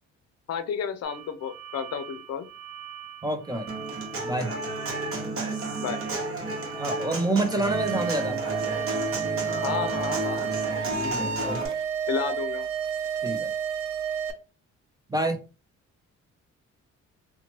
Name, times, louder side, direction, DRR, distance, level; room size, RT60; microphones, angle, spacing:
voice 1, 0.5-2.5 5.8-6.0 9.6-10.5 12.1-12.7, left 7 dB, 55° left, 10 dB, 0.5 m, -31 dB
sound 1, 1.0-10.7, right 10 dB, 85° right, 1.0 m, -43 dB
voice 2, 3.2-3.7 4.2-4.5 6.8-8.4 10.9-11.6 13.2-13.5 15.1-15.4, right 2 dB, 15° right, 5 dB, 0.4 m, -28 dB
Human voice / Acoustic guitar, 3.7-11.7, right 2 dB, 45° right, 1.1 m, -32 dB
sound 2, 7.6-14.3, right 7 dB, 70° right, 0.6 m, -30 dB
2.9 x 2.2 x 2.9 m, 0.34 s
cardioid pair, 90°, 30 cm